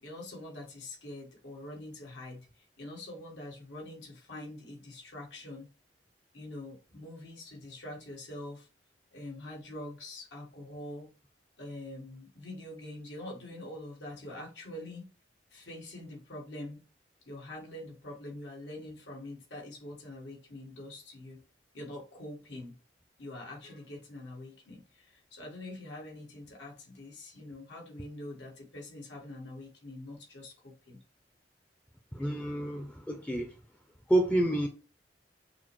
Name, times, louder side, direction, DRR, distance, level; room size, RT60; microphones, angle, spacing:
voice 1, 0.0-5.7 6.3-8.7 9.1-11.1 11.6-15.1 15.5-16.8 17.2-21.4 21.7-22.8 23.2-31.0, left 1 dB, 85° left, 1.6 m, -44 dB
voice 2, 32.1-33.6 34.1-34.7, right 1 dB, 5° left, 0.4 m, -28 dB
6.0 x 2.1 x 3.0 m
head